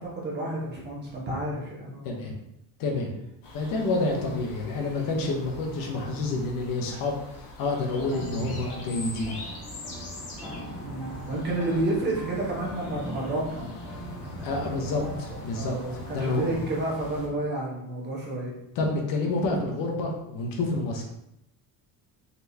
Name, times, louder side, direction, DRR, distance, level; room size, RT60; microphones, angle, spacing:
voice 1, 0.0-2.3 4.1-4.4 10.8-13.7 14.3-15.0 15.5-18.5, right 1 dB, 30° right, -4 dB, 1.2 m, -31 dB
voice 2, 2.0-2.4 2.8-3.1 3.5-7.2 7.6-9.4 14.4-15.7 16.1-16.6 18.7-21.0, left 2 dB, 65° left, 1 dB, 1.0 m, -28 dB
sound 1, 3.4-17.3, left 1 dB, 85° left, 1.4 m, -44 dB
sound 2, 8.0-17.5, equal, ahead, 0.8 m, -40 dB
4.3 x 3.4 x 2.8 m, 0.83 s
cardioid pair, 150°, 37 cm